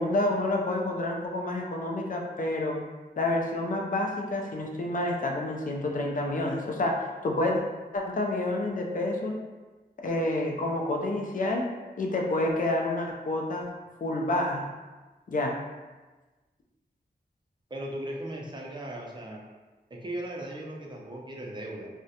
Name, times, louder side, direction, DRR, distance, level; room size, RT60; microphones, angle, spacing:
voice 1, 0.0-2.8 3.2-6.9 7.2-7.6 7.9-9.3 10.0-11.6 12.0-13.6 14.0-14.7 15.3-15.5, left 2 dB, 50° left, 0 dB, 0.4 m, -28 dB
voice 2, 17.7-19.4 19.9-21.9, right 1 dB, 25° right, -1 dB, 0.5 m, -37 dB
2.3 x 2.1 x 2.7 m, 1.2 s
wide cardioid pair, 70°, 18 cm